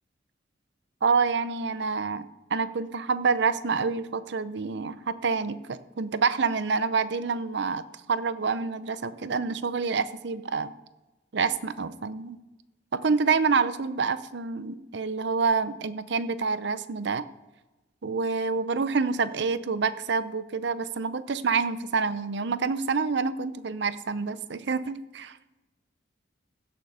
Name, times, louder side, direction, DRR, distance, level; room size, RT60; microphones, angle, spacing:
voice 1, 1.0-10.7 11.3-12.4 12.9-17.2 18.0-25.4, right 5 dB, 65° right, 14 dB, 0.6 m, -27 dB
16.0 x 6.9 x 5.0 m, 1.1 s
head